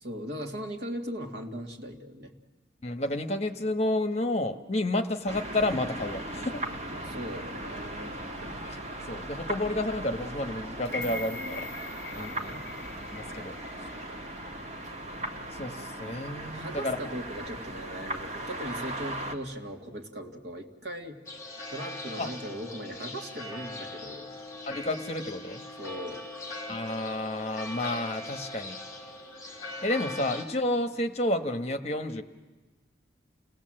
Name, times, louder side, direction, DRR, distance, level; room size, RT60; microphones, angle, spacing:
voice 1, 0.0-2.3 6.9-8.2 10.9-12.6 16.4-21.2 21.7-24.3 25.8-26.2, equal, 70° right, 3 dB, 2.2 m, -39 dB
voice 2, 2.8-6.6 8.6-11.6 12.2-12.6 13.1-13.5 15.5-17.1 22.2-22.3 24.7-25.6 26.7-28.8 29.8-32.2, left 1 dB, 35° left, 7 dB, 1.2 m, -30 dB
sound 1, 5.3-19.4, right 1 dB, 40° right, 1.7 m, -38 dB
sound 2, 10.9-15.0 15.4-15.5, left 4 dB, 65° left, 0.7 m, -43 dB
sound 3, 21.2-30.4, left 2 dB, 15° left, 3.3 m, -40 dB
29.0 x 18.0 x 7.7 m, 1.2 s
head